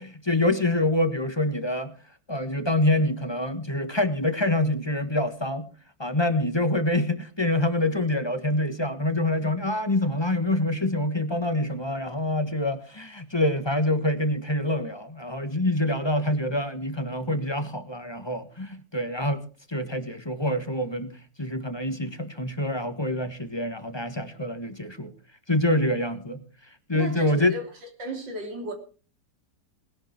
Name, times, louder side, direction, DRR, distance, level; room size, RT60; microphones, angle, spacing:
voice 1, 0.0-1.9 2.3-5.7 6.0-19.4 19.7-25.1 25.5-26.4 26.9-27.5, left 1 dB, 15° left, 1.3 m, -26 dB
voice 2, 26.9-27.7 28.0-28.7, right 2 dB, 80° right, 4.0 m, -33 dB
20.0 x 11.5 x 4.5 m
omnidirectional pair, 2.0 m